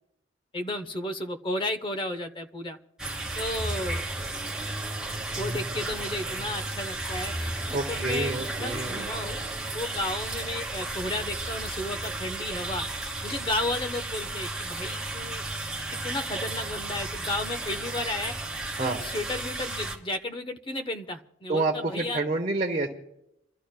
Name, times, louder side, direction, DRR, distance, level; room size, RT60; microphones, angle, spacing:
voice 1, 0.5-2.8 3.4-4.0 5.3-9.4 9.7-12.9 13.2-15.4 15.9-18.3 18.8-22.3, left 1 dB, 25° left, 7 dB, 0.9 m, -33 dB
sound 1, 3.0-20.0, right 2 dB, 5° right, 2.0 m, -33 dB
voice 2, 7.7-9.1 18.8-19.0 21.5-22.9, right 2 dB, 35° right, 0 dB, 1.0 m, -28 dB
29.5 x 13.5 x 2.2 m, 0.81 s
head